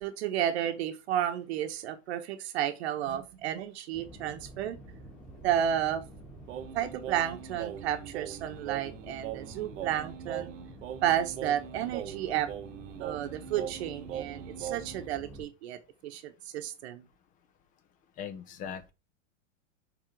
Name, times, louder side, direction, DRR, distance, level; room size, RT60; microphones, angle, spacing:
voice 1, 0.0-4.8 5.4-6.0 6.7-10.5 11.0-12.5 13.0-17.0, right 10 dB, 55° right, 1.0 m, -32 dB
sound 1, 3.9-15.5, right 1 dB, 5° left, 1.7 m, -49 dB
Singing, 6.5-15.1, right 10 dB, 80° right, 0.9 m, -41 dB
voice 2, 18.2-18.9, left 8 dB, 20° left, 0.6 m, -39 dB
6.1 x 3.8 x 4.6 m
supercardioid pair, 150°, 38 cm